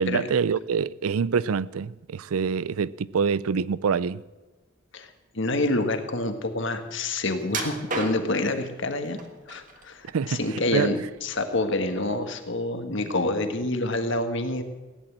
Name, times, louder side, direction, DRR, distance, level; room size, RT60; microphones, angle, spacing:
voice 1, 0.0-4.2 10.1-10.4 10.7-10.9, right 6 dB, 80° right, 0.5 m, -25 dB
voice 2, 4.9-9.2 9.5-14.6, left 2 dB, 55° left, 1.6 m, -27 dB
sound 1, 7.5-8.5 9.2-9.9 10.3-11.2 11.5-11.7 12.2-12.3, right 3 dB, 35° right, 1.6 m, -33 dB
16.5 x 10.5 x 7.4 m
head